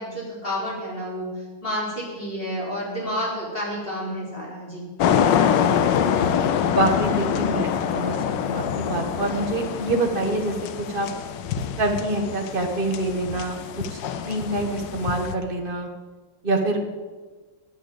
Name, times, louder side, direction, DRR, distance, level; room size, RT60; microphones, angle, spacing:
voice 1, 0.0-4.9, equal, 25° left, -5 dB, 4.2 m, -30 dB
sound 1, 5.0-15.3, left 8 dB, 70° left, 1.2 m, -25 dB
voice 2, 6.7-7.7 7.9-8.2 8.4-11.1 11.8-13.6 13.9-14.0 14.2-15.9 16.4-16.9, right 2 dB, 30° right, 3 dB, 1.3 m, -25 dB
10.0 x 8.9 x 7.8 m, 1.3 s
omnidirectional pair, 2.3 m